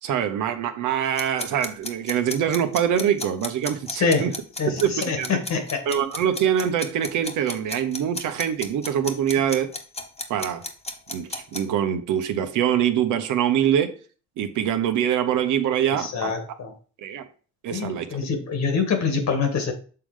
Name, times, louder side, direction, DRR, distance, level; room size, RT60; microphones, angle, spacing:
voice 1, 0.0-3.9 4.2-4.3 4.8-4.9 5.2-5.4 5.9-9.7 10.3-10.6 11.1-13.9 14.4-16.3 17.0-17.3 17.6-18.2, right 9 dB, 80° right, 1.0 m, -24 dB
sound 1, 1.2-11.6, left 2 dB, 20° left, 1.2 m, -33 dB
voice 2, 3.9-4.3 4.6-5.8 16.0-16.7 17.7-19.7, left 5 dB, 65° left, 1.9 m, -25 dB
6.8 x 3.8 x 4.9 m
cardioid pair, 90°, 30 cm